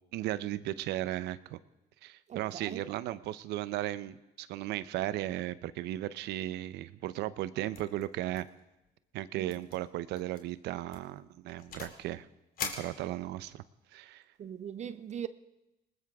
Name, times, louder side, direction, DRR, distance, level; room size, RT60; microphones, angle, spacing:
voice 1, 0.1-1.6 2.0-8.5 9.1-12.3 12.6-13.6 13.9-14.2, right 14 dB, 85° right, 0.7 m, -36 dB
voice 2, 2.3-2.8 9.3-9.6 14.4-15.3, right 9 dB, 45° right, 0.6 m, -40 dB
sound 1, 7.7-8.0 8.3-8.6 8.9-9.0 9.5-9.8 10.2-10.4 10.9-12.0 12.6-13.6, left 6 dB, 60° left, 2.5 m, -42 dB
20.0 x 20.0 x 3.6 m
cardioid pair, 110°, 17 cm